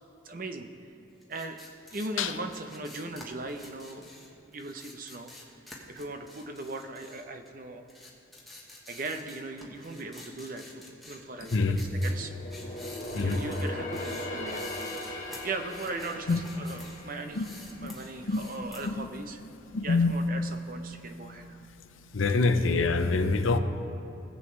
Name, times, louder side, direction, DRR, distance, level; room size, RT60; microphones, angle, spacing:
voice 1, 0.2-0.7 1.3-4.1 4.4-5.3 5.9-7.8 8.9-12.3 13.1-14.6 14.9-19.4 19.8-21.6, right 2 dB, 45° right, 7 dB, 0.6 m, -39 dB
sound 1, 1.2-7.6 7.9-17.0 17.3-18.9, left 1 dB, ahead, 1.1 m, -49 dB
sound 2, 11.3-18.8 19.2-19.4 19.9-20.7 21.0-21.1, left 1 dB, 40° left, 1.5 m, -40 dB
voice 2, 11.5-11.8 13.1-13.4 16.3-16.4 17.3-17.5 17.8-17.9 18.2-18.5 18.8-19.1 19.7-20.2 22.1-23.6, left 3 dB, 85° left, 9 dB, 0.7 m, -25 dB
18.5 x 7.9 x 3.2 m, 2.8 s
head